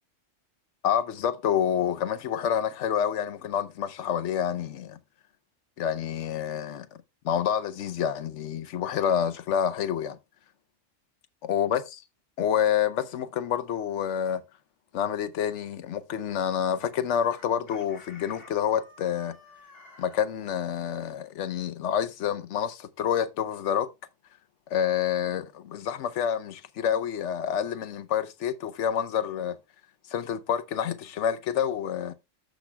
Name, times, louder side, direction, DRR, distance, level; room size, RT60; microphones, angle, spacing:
voice 1, 0.8-5.0 5.8-6.9 7.2-10.2 11.5-12.0 12.4-14.4 14.9-19.4 20.0-23.9 24.7-29.6 30.1-32.1, left 9 dB, 75° left, 1.0 m, -28 dB
Chicken rooster, 17.3-20.2, left 1 dB, 50° left, 1.8 m, -51 dB
14.5 x 6.2 x 2.2 m
omnidirectional pair, 1.3 m